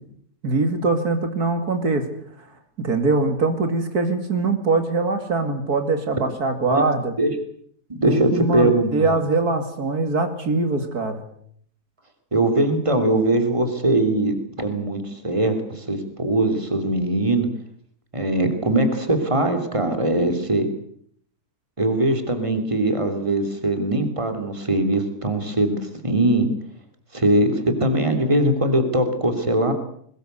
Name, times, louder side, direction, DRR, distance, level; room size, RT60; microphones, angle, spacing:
voice 1, 0.4-2.1 2.8-7.1 8.1-11.2, right 3 dB, 70° right, 7 dB, 2.8 m, -22 dB
voice 2, 7.9-9.2 12.3-17.5 18.1-20.7 21.8-26.5 27.1-29.7, right 1 dB, 20° right, 7 dB, 3.2 m, -21 dB
21.5 x 20.5 x 8.2 m, 0.65 s
omnidirectional pair, 1.7 m